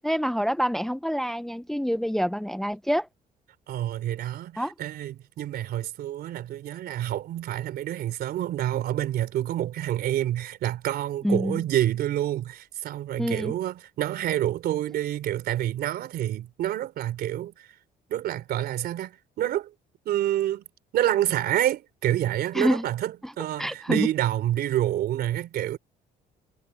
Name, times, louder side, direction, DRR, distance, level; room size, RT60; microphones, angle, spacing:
voice 1, 0.0-3.1 4.6-4.7 11.2-11.6 13.2-13.5 22.5-22.8 23.2-23.3 23.6-24.1, equal, ahead, 0.8 m, -26 dB
voice 2, 3.7-17.7 18.1-19.7 20.1-20.6 20.9-25.8, right 12 dB, 70° right, 3.7 m, -28 dB
cardioid pair, 110°, 17 cm